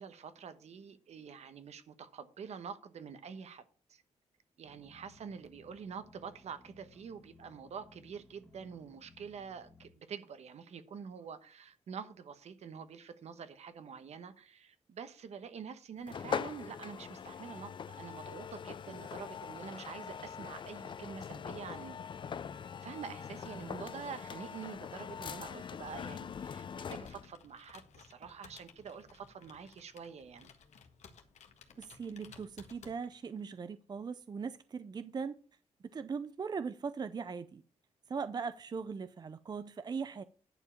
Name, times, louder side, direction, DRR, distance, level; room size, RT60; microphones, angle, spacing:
voice 1, 0.0-3.6 3.9-4.0 4.6-22.0 22.8-30.5, right 6 dB, 70° right, 1.2 m, -47 dB
sound 1, 4.6-9.9, left 3 dB, 15° left, 1.7 m, -61 dB
sound 2, 16.1-27.3, left 7 dB, 45° left, 0.4 m, -42 dB
Computer keyboard, 26.5-33.4, left 6 dB, 75° left, 1.5 m, -58 dB
voice 2, 31.8-35.4 35.9-37.6 38.1-40.2, right 5 dB, 35° right, 0.5 m, -40 dB
10.5 x 4.8 x 7.1 m
cardioid pair, 105°, 12 cm